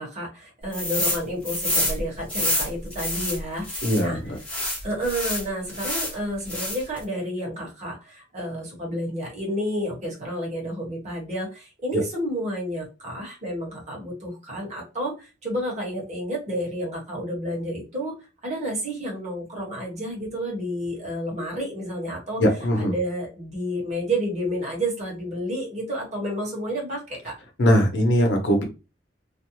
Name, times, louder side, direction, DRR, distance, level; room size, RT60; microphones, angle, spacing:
voice 1, 0.0-4.2 4.8-18.1 18.4-22.4 22.8-27.4, equal, 40° right, -1 dB, 1.2 m, -30 dB
sound 1, 0.7-1.2 1.4-4.0 4.4-6.1 6.5-7.0, left 1 dB, 5° left, 0.9 m, -27 dB
voice 2, 3.8-4.4 22.4-22.9 27.6-28.6, equal, 75° left, 3 dB, 0.8 m, -20 dB
2.5 x 2.1 x 2.9 m, 0.29 s
head